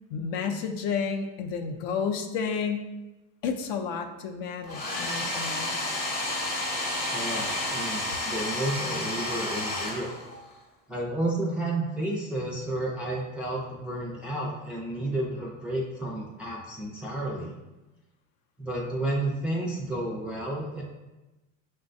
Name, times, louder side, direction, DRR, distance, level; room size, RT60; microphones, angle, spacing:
voice 1, 0.1-2.9 3.4-5.7, left 6 dB, 55° left, 5 dB, 0.5 m, -31 dB
Domestic sounds home sounds, 4.6-10.5, left 1 dB, 25° left, 0.8 m, -31 dB
voice 2, 7.1-10.2 10.9-17.5 18.6-20.8, right 1 dB, 5° right, -4 dB, 0.4 m, -31 dB
6.1 x 2.2 x 2.5 m, 1.1 s
supercardioid pair, 130°, 40 cm